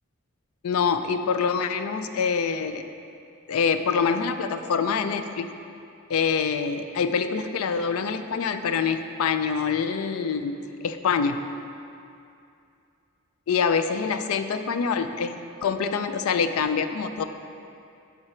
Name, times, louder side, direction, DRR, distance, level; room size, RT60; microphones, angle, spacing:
voice 1, 0.6-2.9 3.5-5.5 6.1-11.4 13.5-17.2, left 6 dB, 85° left, 9 dB, 0.4 m, -25 dB
7.9 x 4.8 x 4.3 m, 2.6 s
head